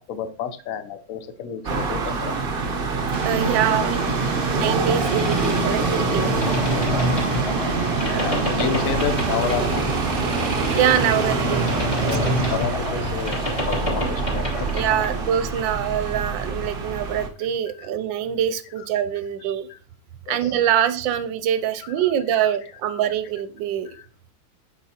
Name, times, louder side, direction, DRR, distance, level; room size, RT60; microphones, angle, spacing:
voice 1, 0.1-2.3 4.9-5.0 5.3-5.4 6.4-7.1 8.2-9.9 11.7-14.5 15.7-15.8 17.7-17.9 18.8-18.9 19.7-19.8 20.3-20.7 21.8-22.5 22.8-23.0 23.9-24.1, left 7 dB, 65° left, 10 dB, 0.9 m, -31 dB
sound 1, 1.6-17.3, right 3 dB, 50° right, 0.6 m, -26 dB
sound 2, 3.1-12.6, right 4 dB, 30° right, 1.2 m, -28 dB
voice 2, 3.2-4.0 4.6-6.4 8.1-8.4 10.7-11.7 12.0-12.3 14.7-19.7 20.3-23.9, right 10 dB, 75° right, 11 dB, 1.2 m, -24 dB
Boat Water vehicle, 4.8-15.3, left 1 dB, 15° left, 2.8 m, -28 dB
7.9 x 5.1 x 2.8 m, 0.42 s
omnidirectional pair, 2.2 m